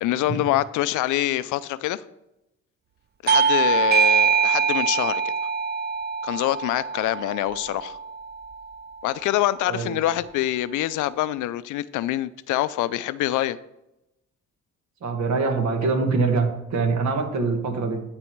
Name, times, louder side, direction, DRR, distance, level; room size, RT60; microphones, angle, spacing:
voice 1, 0.0-2.0 3.2-5.2 6.2-8.0 9.0-13.6, left 14 dB, 85° left, 16 dB, 0.5 m, -25 dB
Bell / Doorbell, 3.3-8.3, right 6 dB, 35° right, 0.4 m, -23 dB
voice 2, 9.7-10.0 15.0-18.0, right 4 dB, 65° right, 5 dB, 1.6 m, -24 dB
12.0 x 4.2 x 4.6 m, 0.90 s
cardioid pair, 90°, 30 cm